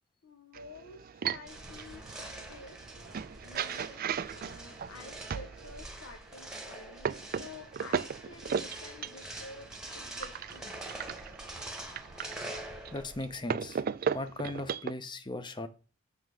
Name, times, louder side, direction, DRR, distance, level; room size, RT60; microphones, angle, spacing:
voice 1, 0.2-2.8 3.4-11.0, left 2 dB, 75° left, 6 dB, 0.8 m, -50 dB
sound 1, 0.5-5.8 6.5-14.9, right 7 dB, 45° right, 0.3 m, -37 dB
sound 2, 1.5-13.4, right 1 dB, 5° right, 1.1 m, -45 dB
voice 2, 12.9-13.8 14.1-15.7, left 2 dB, 20° left, 10 dB, 0.7 m, -38 dB
7.3 x 3.4 x 6.2 m, 0.35 s
head